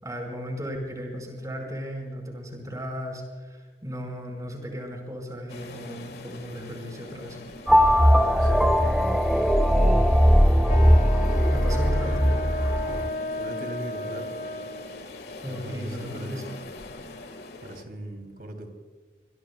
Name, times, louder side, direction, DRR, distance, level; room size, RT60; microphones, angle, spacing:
voice 1, 0.0-7.4 11.5-12.3 15.4-16.4, equal, 20° right, 2 dB, 4.9 m, -36 dB
sound 1, 5.5-17.8, left 2 dB, 65° left, 1.7 m, -42 dB
sound 2, 7.7-13.1, equal, ahead, 0.5 m, -19 dB
voice 2, 8.4-9.1 11.2-12.2 12.9-13.0 13.4-14.3 15.5-16.6 17.6-18.7, right 1 dB, 55° right, 5 dB, 3.0 m, -39 dB
Wind instrument woodwind instrument, 10.7-15.1, left 1 dB, 45° left, 0.9 m, -33 dB
25.5 x 22.5 x 2.3 m, 1.5 s
head